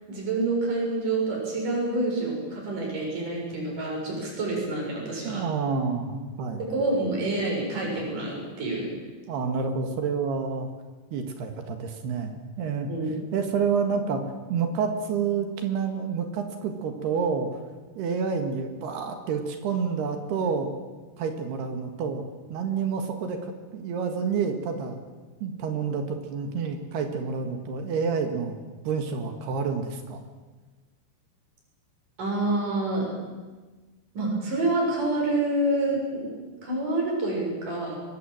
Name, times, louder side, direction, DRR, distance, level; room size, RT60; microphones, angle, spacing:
voice 1, 0.1-5.4 6.7-8.9 12.9-13.1 32.2-33.1 34.2-36.3 36.6-38.0, right 2 dB, 50° right, -2 dB, 8.7 m, -27 dB
voice 2, 5.2-6.6 9.3-10.7 11.1-12.9 13.3-14.2 14.5-17.5 18.0-20.7 21.2-22.2 22.5-25.0 25.4-28.6 28.9-30.2, right 5 dB, 75° right, 5 dB, 3.8 m, -28 dB
24.0 x 22.0 x 7.7 m, 1.3 s
omnidirectional pair, 4.8 m